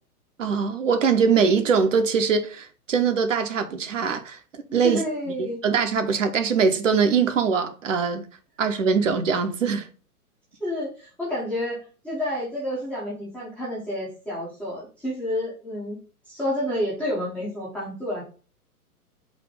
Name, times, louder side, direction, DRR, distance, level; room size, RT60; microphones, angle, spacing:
voice 1, 0.4-4.4 4.7-5.0 5.4-8.2 8.6-9.9, right 6 dB, 55° right, 0.8 m, -22 dB
voice 2, 4.8-5.6 10.6-16.0 16.3-18.2, left 1 dB, 5° left, 0.5 m, -29 dB
4.2 x 2.6 x 4.8 m
figure-of-eight pair, 120°, 46 cm